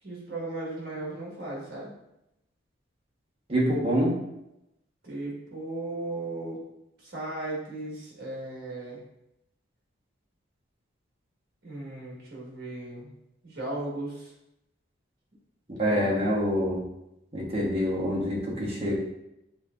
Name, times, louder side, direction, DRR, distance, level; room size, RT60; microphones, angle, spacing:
voice 1, 0.0-1.9 5.0-6.6 7.0-9.0 11.6-13.1 13.4-14.3 15.8-16.3, right 2 dB, 50° right, -4 dB, 1.5 m, -36 dB
voice 2, 3.5-4.1 15.8-16.8 17.3-18.9, equal, 30° right, -5 dB, 1.1 m, -26 dB
5.8 x 2.8 x 2.5 m, 0.85 s
head